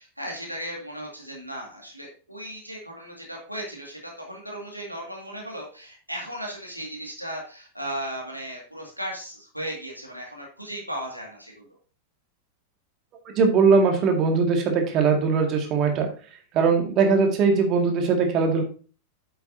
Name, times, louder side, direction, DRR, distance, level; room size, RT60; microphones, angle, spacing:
voice 1, 0.0-11.7, equal, 90° right, -1 dB, 2.1 m, -36 dB
voice 2, 13.4-16.1 16.5-18.6, right 5 dB, 35° right, 3 dB, 2.0 m, -20 dB
8.9 x 7.8 x 2.7 m, 0.38 s
figure-of-eight pair, 90°, 0 cm